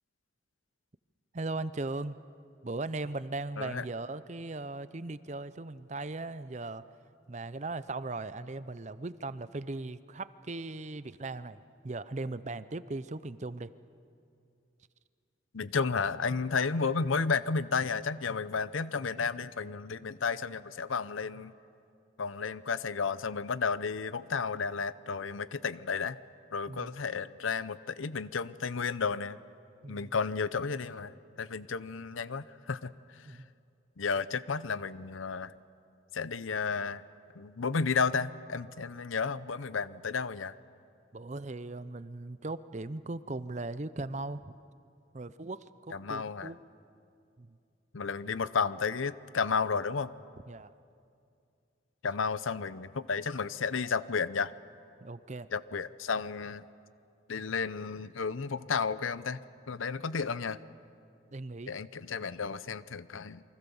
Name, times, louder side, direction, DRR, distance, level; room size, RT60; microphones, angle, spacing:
voice 1, 1.3-2.2 2.6-6.8 7.3-13.7 26.7-26.9 29.8-30.1 33.3-33.5 41.1-44.6 45.1-46.6 47.4-47.6 50.5-50.7 55.0-55.5 61.3-61.7, right 2 dB, 35° right, 15 dB, 0.6 m, -38 dB
voice 2, 15.5-21.5 22.2-26.2 26.5-29.4 29.9-33.4 34.0-35.5 36.1-37.0 37.4-40.5 45.9-46.5 47.9-50.1 52.0-54.5 55.5-56.6 57.3-59.4 59.7-60.6 61.7-63.4, left 5 dB, 85° left, 16 dB, 0.7 m, -32 dB
28.5 x 24.0 x 7.1 m, 2.5 s
head